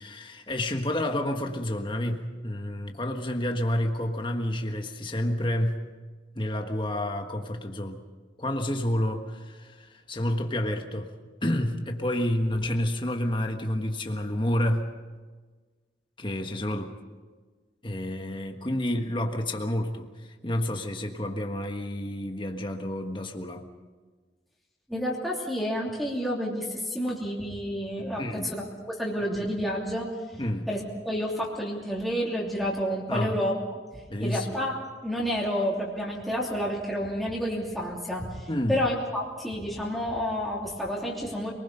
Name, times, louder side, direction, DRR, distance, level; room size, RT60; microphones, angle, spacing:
voice 1, 0.0-5.8 6.3-8.0 8.4-11.1 11.4-14.9 16.2-17.0 17.8-23.7 28.2-28.5 30.4-30.7 33.1-33.4 34.1-34.5 38.5-38.8, left 1 dB, 30° left, 4 dB, 1.5 m, -29 dB
voice 2, 24.9-30.1 30.7-33.5 34.2-34.8 35.0-41.5, equal, ahead, -5 dB, 2.9 m, -30 dB
27.0 x 20.0 x 5.6 m, 1.4 s
head